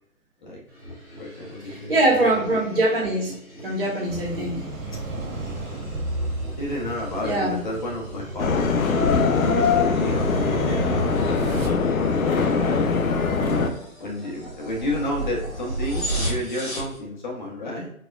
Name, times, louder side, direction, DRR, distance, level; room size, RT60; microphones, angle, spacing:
sound 1, 0.7-17.0, right 1 dB, ahead, 0.8 m, -37 dB
voice 1, 1.2-2.6 5.1-5.9 6.5-8.9 9.3-13.0 13.3-13.6 14.0-17.9, left 1 dB, 35° left, -2 dB, 0.7 m, -32 dB
voice 2, 1.7-3.3 3.6-4.6 7.2-7.6, right 1 dB, 40° right, -2 dB, 1.1 m, -22 dB
sound 2, 4.1-11.7, right 2 dB, 85° right, 0.7 m, -32 dB
sound 3, 8.4-13.7, left 5 dB, 75° left, 0.6 m, -22 dB
4.4 x 2.1 x 2.2 m, 0.70 s
figure-of-eight pair, 140°, 41 cm